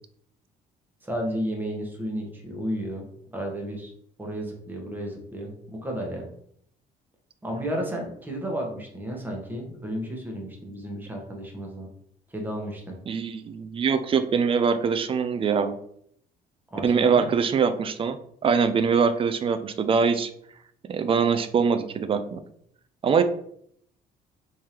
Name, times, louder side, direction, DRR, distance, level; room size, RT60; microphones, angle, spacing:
voice 1, 1.0-3.1 3.3-3.9 4.2-6.3 7.4-11.9 12.3-13.0 16.7-17.4, equal, 10° right, 0 dB, 1.0 m, -32 dB
voice 2, 13.1-15.7 16.8-18.2 18.4-20.3 20.8-22.4 23.0-23.2, right 6 dB, 30° right, 11 dB, 0.4 m, -23 dB
3.6 x 3.2 x 2.8 m, 0.69 s
cardioid pair, 110°, 17 cm